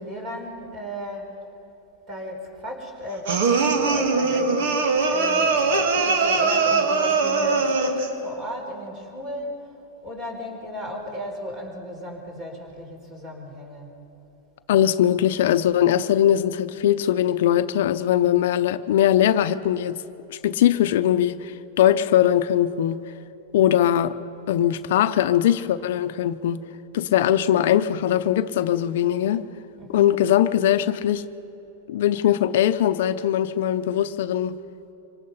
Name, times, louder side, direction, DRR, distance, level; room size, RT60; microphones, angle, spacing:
voice 1, 0.0-1.4 2.1-9.8 10.0-13.9 29.8-30.2, equal, 30° right, 2 dB, 4.6 m, -35 dB
sound 1, 3.3-8.2, right 4 dB, 70° right, 2.0 m, -21 dB
voice 2, 14.7-20.0 20.3-23.0 23.5-24.2 24.5-26.6 26.9-29.4 29.9-31.2 31.9-34.6, left 11 dB, 70° left, 11 dB, 0.7 m, -21 dB
25.0 x 18.5 x 5.7 m, 3.0 s
supercardioid pair, 145°, 0 cm